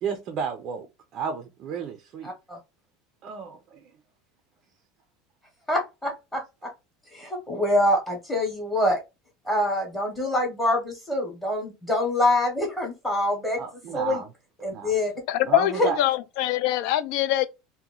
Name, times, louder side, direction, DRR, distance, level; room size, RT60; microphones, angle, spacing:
voice 1, 0.0-2.3 3.2-3.9 13.6-14.3 14.7-14.9 15.5-16.0, right 6 dB, 35° right, 0.5 m, -32 dB
voice 2, 2.2-2.6 5.7-6.7 7.1-9.0 9.4-13.6 13.9-14.2 14.6-15.1 15.7-15.9, left 1 dB, 10° left, 0.9 m, -25 dB
voice 3, 15.3-17.5, left 13 dB, 55° left, 0.4 m, -24 dB
2.9 x 2.1 x 3.7 m
supercardioid pair, 165°, 0 cm